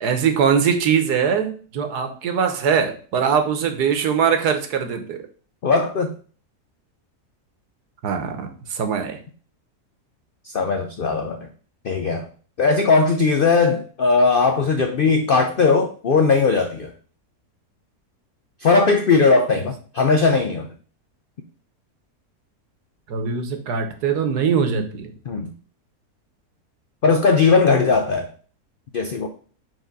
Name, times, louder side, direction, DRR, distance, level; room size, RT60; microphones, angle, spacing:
voice 1, 0.0-5.2 8.0-9.2 23.1-25.1, right 7 dB, 85° right, 7 dB, 1.5 m, -22 dB
voice 2, 5.6-6.2 10.4-11.4 11.8-12.3 12.6-16.9 18.6-20.7 25.3-25.5 27.0-28.3 28.9-29.3, left 4 dB, 75° left, 5 dB, 0.5 m, -18 dB
4.7 x 3.8 x 5.2 m, 0.41 s
omnidirectional pair, 1.7 m